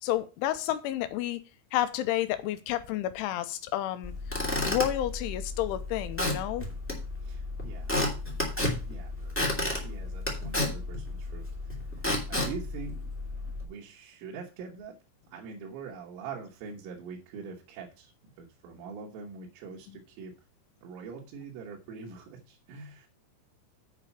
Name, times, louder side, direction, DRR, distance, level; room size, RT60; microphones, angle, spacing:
voice 1, 0.0-1.4 1.7-4.1 4.6-6.7, left 13 dB, 80° left, 2.9 m, -30 dB
Squeak / Wood, 4.0-13.6, left 1 dB, 10° left, 0.7 m, -32 dB
voice 2, 7.2-8.0 8.9-13.0 13.6-14.9 15.3-18.1 18.4-20.3 20.8-23.1, right 5 dB, 75° right, 3.8 m, -44 dB
8.4 x 5.2 x 7.1 m
omnidirectional pair, 5.9 m